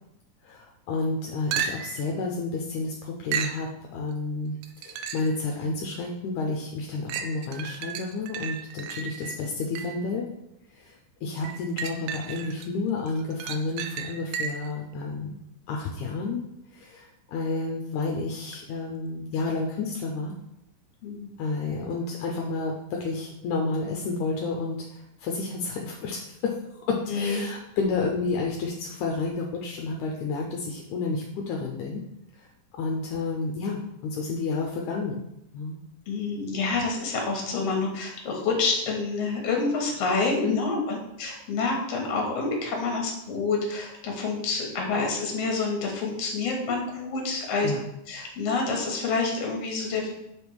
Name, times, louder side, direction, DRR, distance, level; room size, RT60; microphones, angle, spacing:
voice 1, 0.4-10.3 10.7-15.4 15.7-16.4 16.7-20.4 21.4-26.6 26.9-32.0 32.3-32.5 32.8-35.2 35.5-35.8 40.4-40.9 47.6-47.8, left 3 dB, 80° left, 0 dB, 2.0 m, -30 dB
sound 1, 1.5-2.1 3.3-3.7 4.6-5.4 6.0-6.1 7.1-10.1 11.4-12.7 13.1-14.8 18.5-18.6, right 7 dB, 80° right, 2.0 m, -34 dB
voice 2, 27.1-27.4 36.1-47.7 48.1-50.1, left 4 dB, 60° left, 0 dB, 2.2 m, -28 dB
7.1 x 3.5 x 4.6 m, 0.83 s
omnidirectional pair, 3.8 m